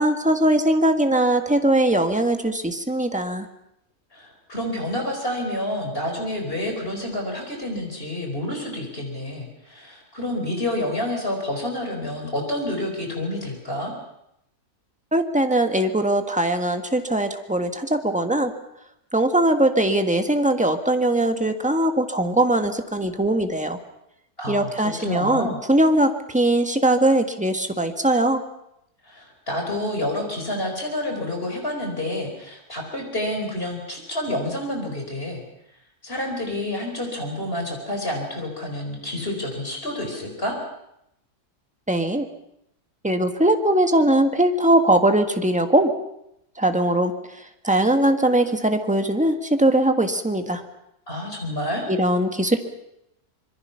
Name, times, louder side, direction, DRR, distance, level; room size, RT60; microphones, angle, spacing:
voice 1, 0.0-3.4 15.1-18.5 19.1-23.8 24.5-28.4 41.9-42.3 43.0-45.9 46.6-47.1 47.6-50.6 51.9-52.6, right 1 dB, 5° right, 6 dB, 1.4 m, -20 dB
voice 2, 4.1-13.9 24.4-25.6 29.0-35.4 36.0-40.6 51.1-51.9, left 1 dB, 35° left, 2 dB, 4.7 m, -29 dB
25.5 x 22.5 x 5.7 m, 0.81 s
omnidirectional pair, 1.6 m